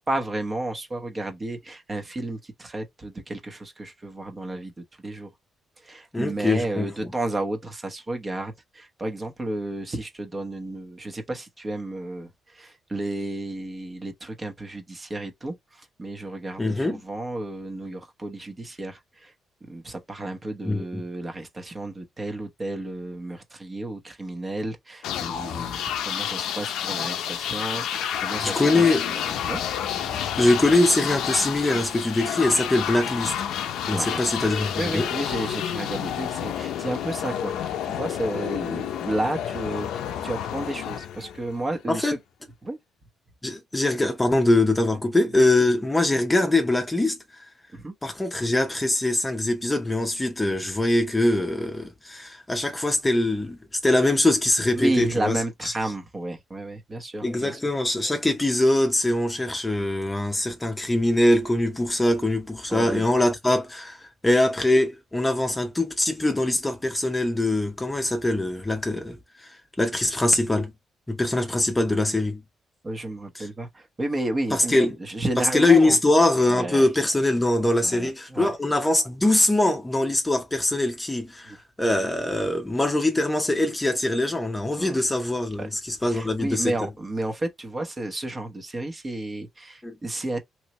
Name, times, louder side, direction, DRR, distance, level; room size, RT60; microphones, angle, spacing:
voice 1, 0.1-5.3 5.8-19.3 19.6-30.4 33.9-34.4 34.8-42.2 42.6-42.8 44.9-45.0 47.7-47.9 54.7-57.6 62.7-63.0 72.8-76.0 76.5-76.8 77.8-78.5 81.4-81.6 84.8-85.0 85.6-85.7 86.0-90.4, right 2 dB, 25° right, 1.1 m, -32 dB
voice 2, 6.1-6.9 16.6-17.0 20.6-20.8 28.4-29.0 30.4-33.3 33.9-35.1 41.9-42.1 43.4-47.2 48.0-55.3 57.2-70.7 71.1-72.4 74.7-74.9 75.5-86.7 89.8-89.9, left 2 dB, 15° left, 0.8 m, -23 dB
sound 1, 25.0-41.8, left 9 dB, 80° left, 0.5 m, -30 dB
3.1 x 2.7 x 3.0 m
cardioid pair, 90°, 0 cm